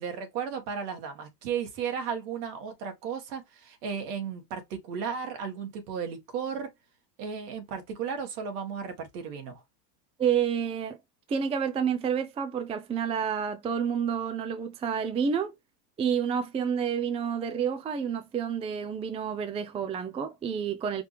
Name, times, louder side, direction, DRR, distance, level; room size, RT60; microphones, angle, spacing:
voice 1, 0.0-6.7 7.2-9.6, right 7 dB, 70° right, 1.8 m, -34 dB
voice 2, 10.2-11.0 11.3-15.5 16.0-21.0, right 7 dB, 15° right, 0.4 m, -29 dB
5.0 x 2.8 x 3.3 m
hypercardioid pair, 105°, 48 cm